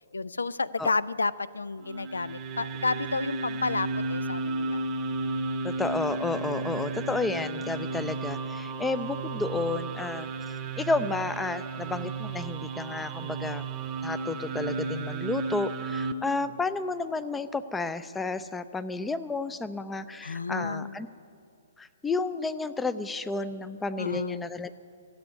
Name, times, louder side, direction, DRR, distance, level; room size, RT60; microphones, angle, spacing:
voice 1, 0.1-4.9 20.2-20.9 24.0-24.4, left 3 dB, 75° left, 18 dB, 0.3 m, -31 dB
sound 1, 1.8-16.1, right 3 dB, 25° right, 0.8 m, -33 dB
voice 2, 5.6-10.3 10.8-13.6 14.0-21.1 21.8-24.7, left 3 dB, 10° left, 13 dB, 0.5 m, -31 dB
15.5 x 7.9 x 9.6 m, 2.5 s
figure-of-eight pair, 125°, 0 cm